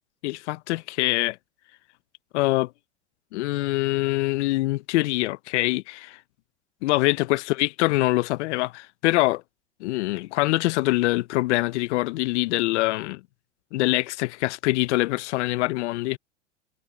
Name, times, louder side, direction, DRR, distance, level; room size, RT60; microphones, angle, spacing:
voice 1, 0.2-1.4 2.3-2.7 3.3-6.2 6.8-9.4 9.8-13.2 13.7-16.2, left 19 dB, 70° left, 0.9 m, -24 dB
hypercardioid pair, 100°, 36 cm